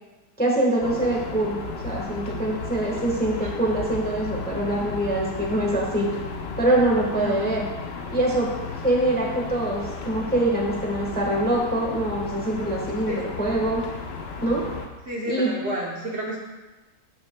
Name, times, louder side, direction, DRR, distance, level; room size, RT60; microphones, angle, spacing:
voice 1, 0.4-1.6 1.8-6.1 6.6-7.7 8.1-13.8 14.4-14.6 15.3-15.5, right 1 dB, 5° left, -2 dB, 1.0 m, -24 dB
sound 1, 0.8-14.9, left 4 dB, 55° left, 0.8 m, -34 dB
voice 2, 15.0-16.4, right 1 dB, 45° right, -3 dB, 1.1 m, -30 dB
13.5 x 6.0 x 2.2 m, 1.1 s
omnidirectional pair, 1.8 m